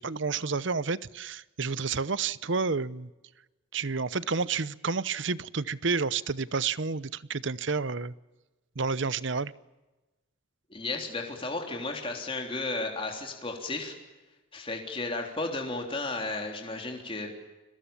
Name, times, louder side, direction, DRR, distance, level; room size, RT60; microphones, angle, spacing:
voice 1, 0.0-3.1 3.7-8.1 8.8-9.5, right 4 dB, 60° right, 18 dB, 0.8 m, -30 dB
voice 2, 10.7-13.9 14.5-17.3, left 3 dB, 25° left, 2 dB, 3.5 m, -34 dB
30.0 x 22.5 x 7.2 m, 1.1 s
head